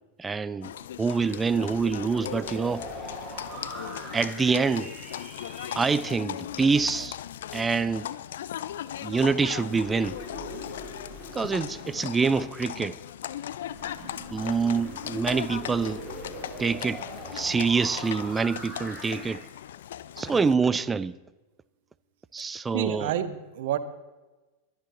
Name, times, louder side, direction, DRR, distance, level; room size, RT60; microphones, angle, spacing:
voice 1, 0.2-0.7 1.0-2.9 4.1-4.9 5.8-7.2 7.5-8.1 9.0-10.2 11.3-13.0 14.3-16.0 16.6-17.0 17.3-19.4 20.2-21.2 22.3-23.1, right 5 dB, 15° right, 0.5 m, -26 dB
Livestock farm animals working animals, 0.6-20.5, left 11 dB, 60° left, 0.5 m, -38 dB
sound 1, 1.0-6.1 9.2-13.0 13.7-19.4, equal, 10° left, 4.8 m, -42 dB
voice 2, 22.7-23.8, right 11 dB, 55° right, 1.1 m, -29 dB
23.0 x 10.5 x 3.9 m
figure-of-eight pair, 90°, 0 cm